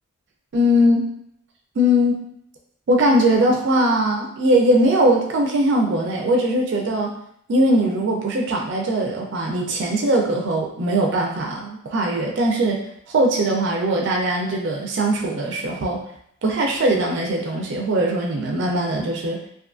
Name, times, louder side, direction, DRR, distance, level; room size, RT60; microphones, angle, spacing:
voice 1, 0.5-1.1 1.8-2.3 2.9-7.2 7.5-12.8 13.1-16.0 16.4-19.4, right 1 dB, 55° right, 0 dB, 0.4 m, -20 dB
2.5 x 2.3 x 2.4 m, 0.70 s
head